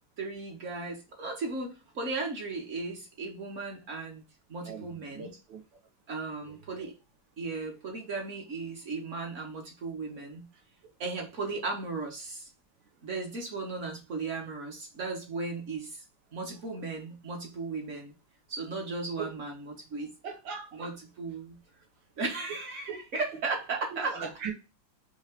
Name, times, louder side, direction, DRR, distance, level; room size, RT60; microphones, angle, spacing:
voice 1, 0.2-4.2 4.5-5.3 6.1-6.9 7.4-10.5 11.0-12.5 13.0-16.0 16.3-18.1 18.5-20.1 20.7-21.6 22.2-24.2, right 3 dB, 50° right, 1.1 m, -36 dB
voice 2, 4.6-5.6 6.5-6.9 18.8-19.3 20.2-20.9 22.9-23.0 23.9-24.5, right 6 dB, 80° right, 1.9 m, -40 dB
4.5 x 2.9 x 3.5 m
omnidirectional pair, 2.0 m